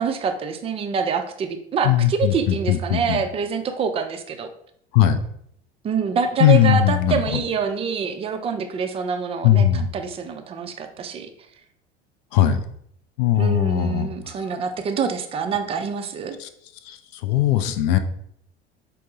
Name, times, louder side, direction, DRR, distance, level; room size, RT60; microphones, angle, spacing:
voice 1, 0.0-4.5 5.8-11.3 13.4-16.4, right 6 dB, 20° right, 7 dB, 0.4 m, -26 dB
voice 2, 1.8-3.2 4.9-5.2 6.4-7.4 9.4-9.9 12.3-12.6 13.2-14.3 16.4-16.5 16.8-18.0, left 11 dB, 50° left, 9 dB, 0.4 m, -19 dB
5.2 x 2.0 x 3.7 m, 0.69 s
figure-of-eight pair, 70°, 33 cm